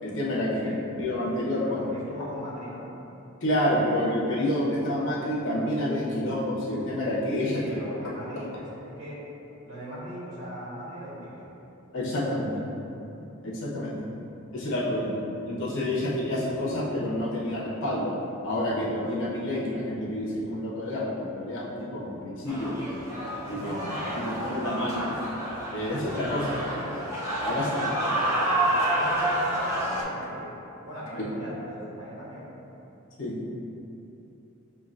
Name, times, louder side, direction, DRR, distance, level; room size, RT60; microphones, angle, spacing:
voice 1, 0.0-1.9 3.4-7.6 11.9-12.6 13.4-14.1 14.5-15.2 15.5-18.1 18.4-23.0 23.5-23.8 24.2-25.1 25.7-26.5 27.4-27.9 33.2-33.5, left 1 dB, 60° left, -6 dB, 1.0 m, -28 dB
voice 2, 1.6-2.9 7.5-9.2 9.6-11.5 23.5-24.7 26.4-27.0 27.5-30.6 30.8-32.6, equal, 70° right, -8 dB, 1.2 m, -39 dB
sound 1, 22.5-30.0, right 1 dB, 15° right, 0.6 m, -29 dB
7.0 x 2.4 x 2.5 m, 3.0 s
head